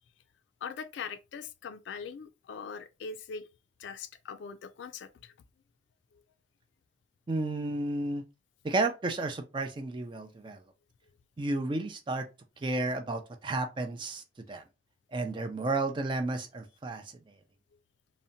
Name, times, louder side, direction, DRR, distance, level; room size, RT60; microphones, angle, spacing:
voice 1, 0.6-3.5 3.8-5.3, left 6 dB, 75° left, 0.3 m, -41 dB
voice 2, 7.3-8.2 8.6-10.6 11.4-12.3 12.6-14.2 14.5-14.6 15.1-17.0, right 2 dB, 25° right, 0.3 m, -32 dB
2.7 x 2.1 x 2.6 m
head